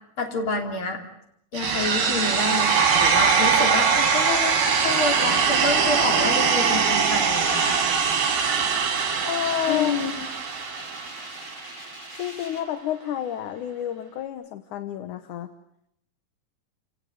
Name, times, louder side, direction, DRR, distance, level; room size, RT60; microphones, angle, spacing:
voice 1, 0.2-1.0 1.5-7.8 9.7-10.3, left 3 dB, 35° left, 3 dB, 3.7 m, -28 dB
sound 1, 1.6-11.5, right 6 dB, 80° right, 5.2 m, -22 dB
sound 2, 2.3-12.6, equal, 10° left, 5.1 m, -42 dB
voice 2, 9.3-10.0 12.1-15.5, left 10 dB, 65° left, 10 dB, 2.2 m, -29 dB
29.0 x 17.5 x 9.3 m, 0.76 s
omnidirectional pair, 4.4 m